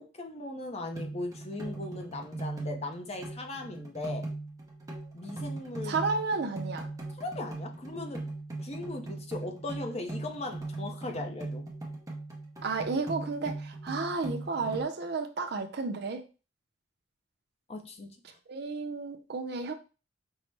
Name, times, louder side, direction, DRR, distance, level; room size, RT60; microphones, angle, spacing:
voice 1, 0.0-4.3 5.1-6.0 7.2-8.3 8.6-11.7 17.7-18.4, left 2 dB, 35° left, 0.6 m, -38 dB
sound 1, 0.9-14.8, right 2 dB, 15° right, 0.8 m, -39 dB
voice 2, 5.8-6.9 12.6-16.2 18.5-19.7, right 4 dB, 55° right, 0.5 m, -32 dB
5.3 x 2.1 x 3.2 m
head